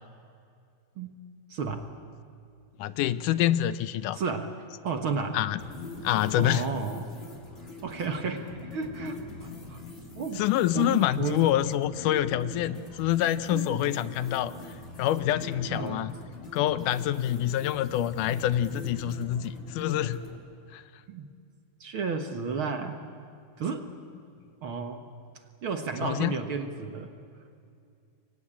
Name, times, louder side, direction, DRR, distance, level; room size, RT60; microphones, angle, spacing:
voice 1, 1.5-1.9 4.1-4.5 4.8-5.4 6.3-7.1 7.8-9.8 10.2-10.4 10.7-11.5 13.5-14.8 15.7-16.1 21.1-21.3 21.8-23.0 23.6-23.9 24.6-25.0 25.6-27.1, right 5 dB, 50° right, 6 dB, 1.8 m, -33 dB
voice 2, 2.8-4.2 5.3-5.6 6.0-6.7 10.4-14.5 15.0-16.1 16.5-20.2 20.7-20.8 26.0-26.3, left 12 dB, 90° left, 14 dB, 2.3 m, -26 dB
sound 1, 5.6-20.4, left 3 dB, 20° left, 3.0 m, -43 dB
28.0 x 23.5 x 8.8 m, 2.5 s
omnidirectional pair, 3.5 m